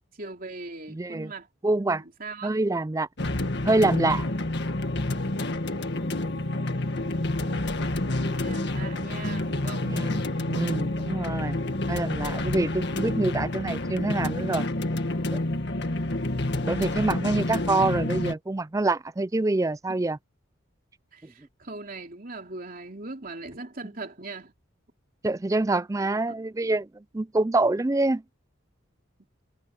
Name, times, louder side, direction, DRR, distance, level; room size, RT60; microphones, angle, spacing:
voice 1, 0.2-1.5 1.8-2.6 5.9-7.6 8.2-9.9 19.9-20.0 21.1-24.5 26.3-26.4, right 3 dB, 45° right, 3.5 m, -41 dB
voice 2, 0.9-1.3 1.6-2.0 2.4-3.1 3.6-4.2 9.8-11.6 11.9-14.7 15.3-15.4 16.6-20.2 25.2-26.9 27.1-28.2, right 2 dB, 15° right, 0.4 m, -26 dB
sound 1, 3.2-18.3, left 2 dB, 55° left, 1.9 m, -28 dB
head